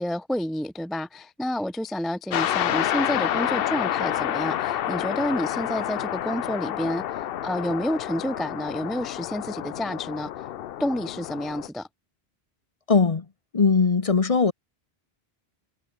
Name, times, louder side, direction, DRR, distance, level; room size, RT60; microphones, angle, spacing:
voice 1, 0.0-10.5 10.8-11.9, left 1 dB, ahead, 0.4 m, -29 dB
sound 1, 2.3-11.7, left 11 dB, 70° left, 0.8 m, -29 dB
voice 2, 12.9-13.3 13.5-14.5, left 4 dB, 35° left, 0.9 m, -20 dB
omnidirectional pair, 1.1 m